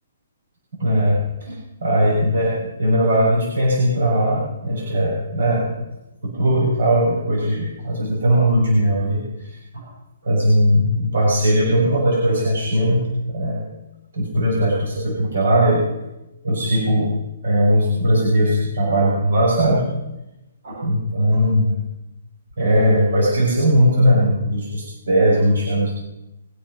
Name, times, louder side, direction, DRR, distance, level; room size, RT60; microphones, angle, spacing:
voice 1, 0.8-1.5 1.8-5.7 6.2-9.5 9.7-9.9 10.2-13.7 14.1-15.9 16.4-17.1 17.4-19.8 20.7-21.7 22.6-25.9, equal, 70° right, -5 dB, 7.1 m, -19 dB
23.5 x 9.9 x 5.7 m, 0.96 s
hypercardioid pair, 160°, 0 cm